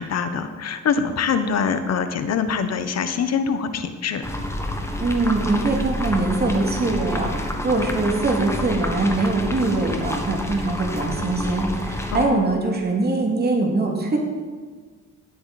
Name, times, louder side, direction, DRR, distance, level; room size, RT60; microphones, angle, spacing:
voice 1, 0.0-4.3 12.1-12.6, left 6 dB, 55° left, 9 dB, 1.1 m, -24 dB
sound 1, 4.2-12.2, left 1 dB, 10° left, 1.5 m, -28 dB
voice 2, 5.0-14.2, right 3 dB, 30° right, 1 dB, 2.5 m, -22 dB
17.0 x 8.1 x 4.2 m, 1.5 s
cardioid pair, 90°, 30 cm